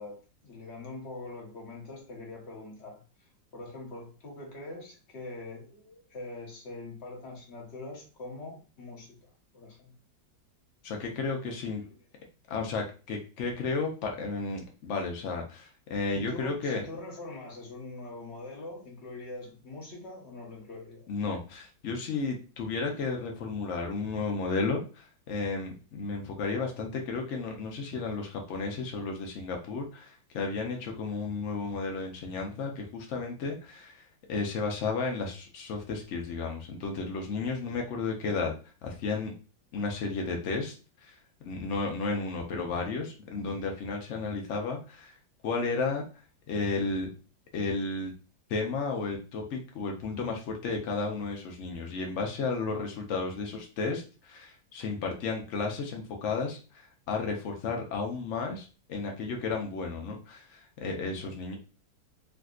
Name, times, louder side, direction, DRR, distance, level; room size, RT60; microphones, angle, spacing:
voice 1, 0.0-9.9 11.8-12.0 16.1-21.1 61.2-61.4, left 2 dB, 45° left, -1 dB, 1.1 m, -43 dB
voice 2, 10.8-11.8 12.5-16.8 21.1-34.0 34.3-38.5 38.8-39.3 39.7-40.7 41.0-41.2 41.4-45.1 45.4-46.0 46.5-47.1 47.5-48.1 48.5-61.6, left 4 dB, 90° left, 2 dB, 0.6 m, -33 dB
3.5 x 2.6 x 2.4 m, 0.35 s
omnidirectional pair, 2.0 m